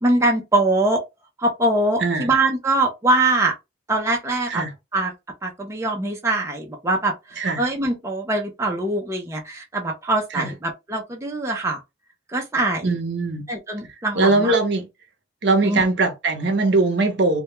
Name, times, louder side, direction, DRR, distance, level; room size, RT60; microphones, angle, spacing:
voice 1, 0.0-1.0 1.4-3.5 3.9-4.6 4.9-5.1 5.4-11.8 12.3-12.9 13.5-14.6 15.6-15.8, right 2 dB, 15° right, 0.4 m, -23 dB
voice 2, 2.0-2.3 4.5-4.7 7.4-7.6 10.3-10.5 12.8-13.4 14.1-14.9 15.4-17.4, right 3 dB, 65° right, 0.6 m, -20 dB
2.2 x 2.1 x 2.9 m
head